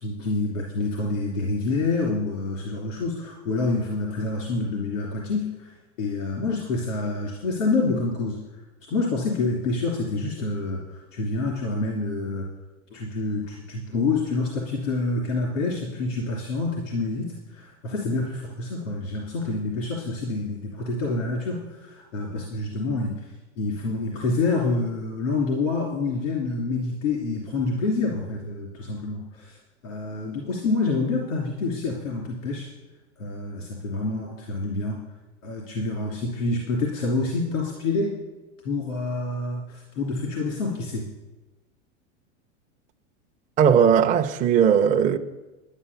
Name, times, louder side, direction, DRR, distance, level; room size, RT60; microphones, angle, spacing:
voice 1, 0.0-12.5 12.9-32.7 33.2-35.0 35.4-38.2 38.6-41.0, left 3 dB, 90° left, 3.0 m, -27 dB
voice 2, 43.6-45.2, right 8 dB, 20° right, 0.6 m, -18 dB
11.5 x 10.5 x 6.9 m
supercardioid pair, 125°, 37 cm